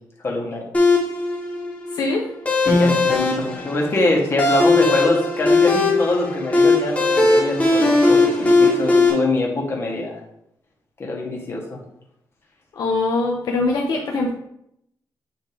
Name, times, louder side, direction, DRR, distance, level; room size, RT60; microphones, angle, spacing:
voice 1, 0.2-0.7 2.6-10.2 11.0-11.8, left 2 dB, 35° left, -1 dB, 1.6 m, -24 dB
sound 1, 0.7-9.1, left 3 dB, 20° left, 1.7 m, -18 dB
voice 2, 1.9-2.2 12.8-14.3, left 3 dB, 60° left, -1 dB, 0.9 m, -22 dB
9.5 x 3.3 x 3.6 m, 0.76 s
cardioid pair, 140°, 7 cm